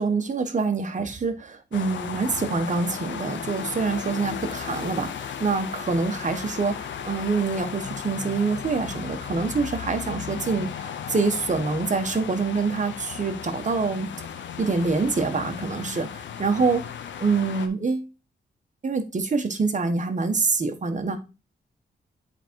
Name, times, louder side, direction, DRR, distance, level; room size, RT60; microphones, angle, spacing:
voice 1, 0.0-14.1 14.6-16.8 17.2-18.1 18.8-21.2, right 4 dB, 40° right, 1.3 m, -26 dB
sound 1, 1.7-17.7, left 8 dB, 90° left, 0.8 m, -35 dB
8.0 x 3.7 x 4.5 m
cardioid pair, 95°, 19 cm